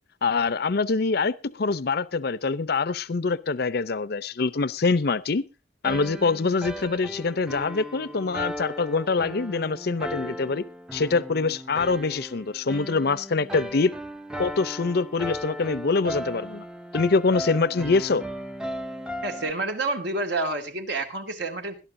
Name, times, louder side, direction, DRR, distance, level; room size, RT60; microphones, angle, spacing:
voice 1, 0.2-5.5 5.8-10.6 10.9-13.9 14.4-16.6 16.9-18.3, left 4 dB, 60° left, 0.6 m, -24 dB
sound 1, 5.8-19.5, equal, 5° right, 0.6 m, -36 dB
voice 2, 19.2-21.8, right 2 dB, 65° right, 2.5 m, -29 dB
21.0 x 12.0 x 2.7 m
head